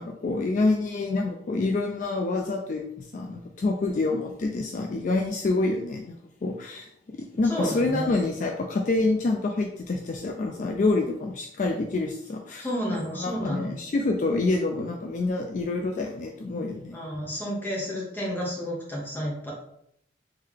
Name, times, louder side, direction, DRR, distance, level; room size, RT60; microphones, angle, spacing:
voice 1, 0.0-12.7 13.1-17.0, left 3 dB, 40° left, 3 dB, 0.3 m, -27 dB
voice 2, 7.4-8.1 12.6-13.7 16.9-19.5, equal, 10° left, -4 dB, 1.1 m, -31 dB
3.7 x 3.3 x 3.2 m, 0.75 s
head